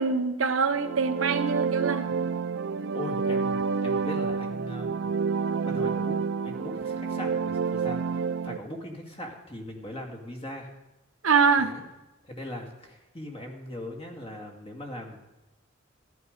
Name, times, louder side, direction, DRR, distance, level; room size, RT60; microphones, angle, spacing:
voice 1, 0.0-2.1 11.2-11.7, right 5 dB, 80° right, 9 dB, 0.9 m, -24 dB
sound 1, 0.7-8.6, right 5 dB, 60° right, 0.4 m, -29 dB
voice 2, 2.9-5.0 5.6-10.7 11.6-11.8 12.3-15.3, left 1 dB, 30° left, 2 dB, 2.1 m, -39 dB
14.0 x 11.5 x 5.3 m, 1.0 s
head